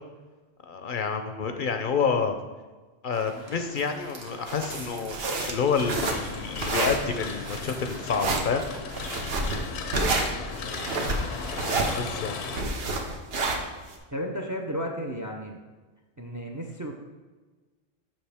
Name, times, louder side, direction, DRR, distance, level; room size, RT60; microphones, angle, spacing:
voice 1, 0.7-2.4 3.0-8.7 11.9-12.4, left 5 dB, 60° left, 7 dB, 0.7 m, -28 dB
sound 1, 3.1-8.8, right 2 dB, 85° right, 1.4 m, -44 dB
sound 2, 4.5-13.9, right 3 dB, 70° right, 1.1 m, -29 dB
sound 3, 5.8-12.6, left 5 dB, 90° left, 0.9 m, -36 dB
voice 2, 14.1-15.6 16.2-16.9, equal, 25° right, 2 dB, 0.4 m, -33 dB
7.2 x 5.9 x 3.4 m, 1.3 s
omnidirectional pair, 1.1 m